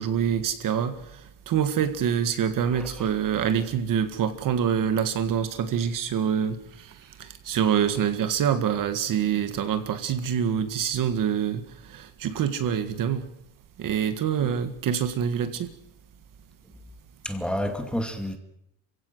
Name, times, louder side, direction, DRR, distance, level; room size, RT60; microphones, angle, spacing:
voice 1, 0.0-13.3 13.8-15.7, right 8 dB, 50° right, 1.9 m, -26 dB
voice 2, 2.7-3.1 14.4-14.5 17.2-18.4, equal, ahead, 2.4 m, -30 dB
27.0 x 16.5 x 7.9 m
cardioid pair, 145°, 42 cm